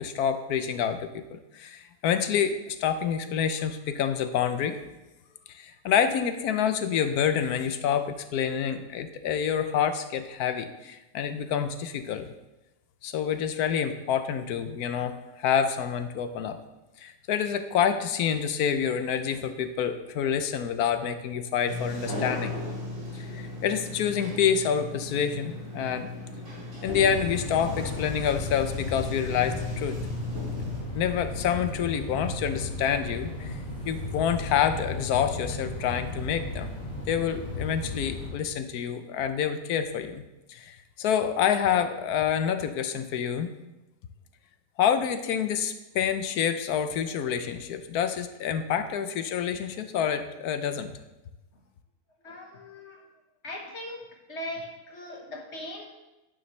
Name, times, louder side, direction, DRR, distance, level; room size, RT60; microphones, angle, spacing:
voice 1, 0.0-4.8 5.5-12.3 13.0-16.6 17.0-22.5 23.1-26.1 26.8-30.0 30.9-36.7 37.1-40.2 40.5-43.5 44.8-50.9, left 8 dB, 90° left, 9 dB, 1.2 m, -27 dB
Sliding door, 21.7-30.8, left 2 dB, 55° right, 4.3 m, -36 dB
sound 1, 26.9-38.3, left 2 dB, 30° left, 2.8 m, -35 dB
voice 2, 52.2-53.0 53.4-54.0 54.3-55.8, left 1 dB, 50° left, 1 dB, 1.6 m, -39 dB
12.0 x 9.8 x 3.2 m, 1.0 s
omnidirectional pair, 1.6 m